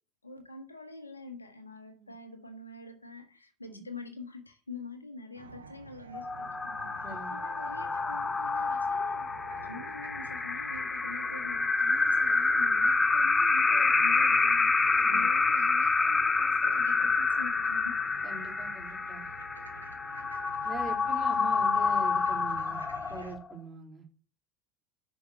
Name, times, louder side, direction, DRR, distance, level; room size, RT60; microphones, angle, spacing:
voice 1, 0.2-18.0 20.1-20.2 21.0-21.5, left 3 dB, 90° left, 1.5 m, -45 dB
sound 1, 5.3-23.4, right 4 dB, 85° right, 1.1 m, -49 dB
sound 2, 6.1-23.5, left 4 dB, 20° left, 0.8 m, -28 dB
voice 2, 7.0-7.4 15.0-15.2 18.2-19.3 20.6-22.8 23.1-24.0, right 4 dB, 20° right, 3.3 m, -43 dB
8.6 x 6.1 x 6.5 m
figure-of-eight pair, 70°, 0 cm